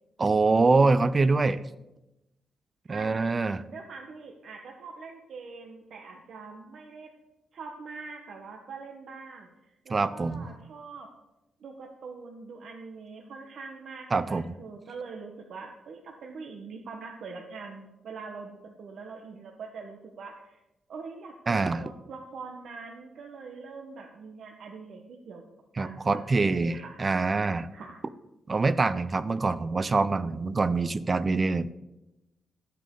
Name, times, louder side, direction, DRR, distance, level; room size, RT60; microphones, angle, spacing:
voice 1, 0.2-1.6 2.9-3.6 9.9-10.4 14.1-14.4 21.5-21.8 25.8-27.7 28.5-31.7, right 3 dB, 25° right, 14 dB, 0.4 m, -25 dB
voice 2, 2.9-3.4 3.7-7.1 7.5-11.1 11.6-20.6 20.9-25.5 25.8-27.0 27.7-28.0, right 4 dB, 60° right, 1 dB, 1.1 m, -43 dB
12.5 x 8.3 x 3.8 m, 0.94 s
wide cardioid pair, 145°, 0 cm